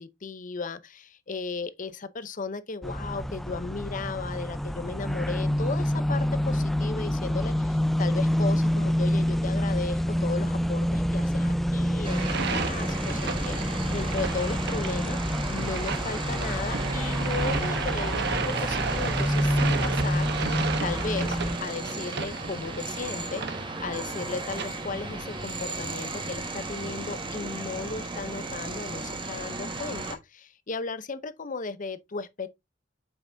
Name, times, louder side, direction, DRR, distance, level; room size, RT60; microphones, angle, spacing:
voice 1, 0.0-15.2 15.5-32.5, left 4 dB, 45° left, 0.7 m, -35 dB
sound 1, 2.8-21.6, equal, ahead, 0.3 m, -27 dB
sound 2, 12.0-30.2, right 2 dB, 25° right, 1.5 m, -35 dB
sound 3, 12.0-24.7, right 5 dB, 60° right, 1.1 m, -34 dB
8.0 x 5.8 x 2.7 m
head